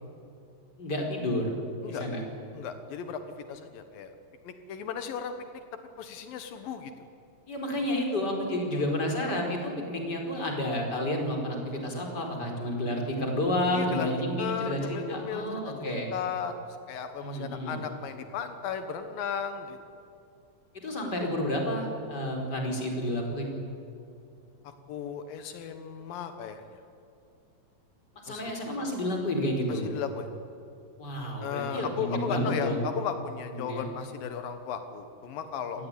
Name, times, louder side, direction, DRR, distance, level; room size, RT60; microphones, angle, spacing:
voice 1, 0.8-1.6 1.9-2.2 7.5-16.1 17.2-17.8 20.7-23.5 28.2-29.8 31.0-32.9 33.6-33.9 35.8-35.9, left 1 dB, 30° left, 2 dB, 5.0 m, -30 dB
voice 2, 2.5-4.1 4.4-5.6 6.0-6.9 8.7-8.9 13.7-14.1 14.4-19.8 24.6-26.8 28.3-28.5 29.7-30.3 31.4-35.9, left 7 dB, 85° left, 8 dB, 3.0 m, -36 dB
28.0 x 19.0 x 10.0 m, 2.7 s
omnidirectional pair, 4.0 m